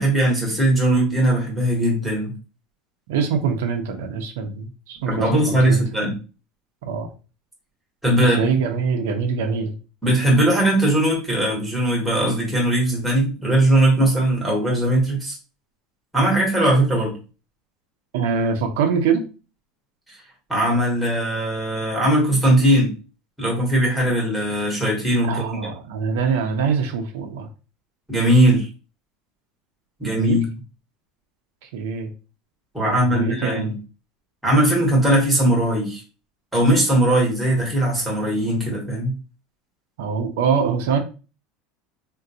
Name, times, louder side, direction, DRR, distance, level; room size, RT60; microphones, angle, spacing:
voice 1, 0.0-2.3 5.1-6.1 8.0-8.4 10.0-15.3 16.1-17.2 20.5-22.9 23.4-25.7 28.1-28.7 30.0-30.5 32.7-33.8 34.4-36.0 36.5-39.2, right 1 dB, ahead, -3 dB, 1.1 m, -19 dB
voice 2, 3.1-5.8 6.8-7.1 8.3-9.7 18.1-19.2 25.2-27.5 30.0-30.4 31.7-32.1 32.9-33.7 40.0-41.0, right 6 dB, 80° right, 5 dB, 0.6 m, -24 dB
3.7 x 2.2 x 2.7 m, 0.33 s
cardioid pair, 175°, 0 cm